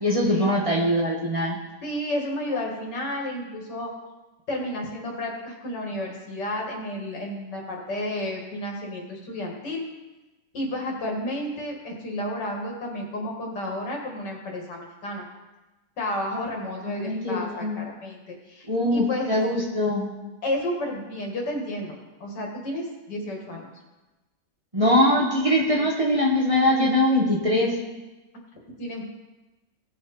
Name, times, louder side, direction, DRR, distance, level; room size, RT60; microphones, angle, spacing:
voice 1, 0.0-1.6 16.9-17.8 18.7-20.1 24.7-27.8, left 1 dB, 20° right, -3 dB, 1.5 m, -22 dB
voice 2, 1.8-3.9 4.5-9.8 10.5-15.2 16.0-19.4 20.4-23.7 25.7-25.8 28.8-29.0, left 1 dB, 85° left, 0 dB, 2.6 m, -31 dB
17.5 x 6.4 x 4.3 m, 1.1 s
omnidirectional pair, 1.8 m